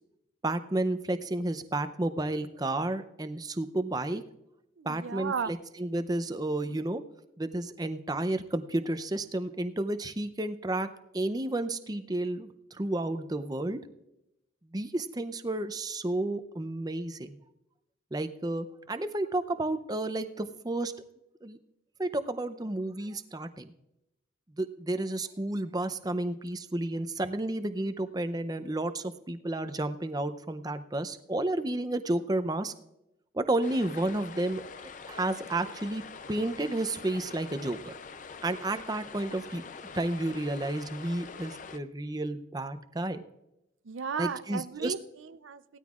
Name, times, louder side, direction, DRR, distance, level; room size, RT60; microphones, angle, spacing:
voice 1, 0.4-4.2 4.8-7.0 7.4-10.9 11.1-13.8 14.7-17.4 18.1-20.9 21.4-21.6 22.0-23.7 24.6-32.7 33.3-36.0 36.3-37.9 38.4-39.6 39.9-43.2 44.2-44.9, right 2 dB, 20° right, 10 dB, 0.5 m, -31 dB
voice 2, 4.8-5.5 43.8-45.8, right 5 dB, 85° right, 13 dB, 0.5 m, -35 dB
sound 1, 33.6-41.8, left 5 dB, 40° left, 0.5 m, -45 dB
18.0 x 13.0 x 2.4 m, 0.87 s
head